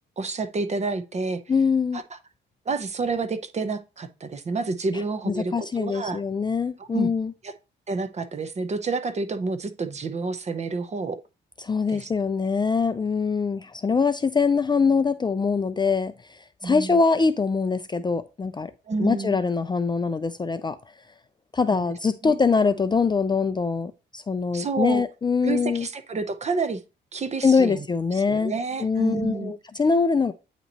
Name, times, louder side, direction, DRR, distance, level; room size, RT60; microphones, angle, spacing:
voice 1, 0.2-1.4 1.9-2.0 2.7-6.2 6.8-7.1 7.4-7.5 7.9-11.2 11.9-12.1 16.6-17.0 18.9-19.4 21.7-21.8 22.2-22.4 24.5-25.0 25.4-26.8 27.1-27.9 28.1-29.5, right 4 dB, 35° right, 0.8 m, -29 dB
voice 2, 1.5-2.0 5.3-7.3 11.6-18.7 19.0-20.8 21.5-25.9 27.4-28.5 28.8-30.3, left 5 dB, 20° left, 0.4 m, -23 dB
9.0 x 3.0 x 4.0 m
cardioid pair, 90°, 20 cm